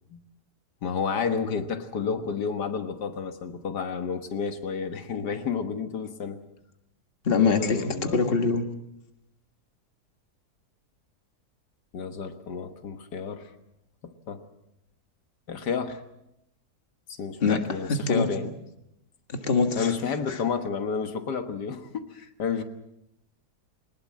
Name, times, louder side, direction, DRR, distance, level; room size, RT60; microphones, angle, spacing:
voice 1, 0.8-6.4 7.4-8.2 11.9-13.5 14.0-14.4 15.5-16.0 17.1-18.5 19.8-22.6, left 6 dB, 85° left, 8 dB, 2.0 m, -31 dB
voice 2, 7.3-8.6 17.4-17.6 18.1-18.3 19.3-19.9 20.3-20.4, left 5 dB, 35° left, 6 dB, 1.8 m, -23 dB
21.5 x 20.0 x 7.5 m, 0.84 s
omnidirectional pair, 1.7 m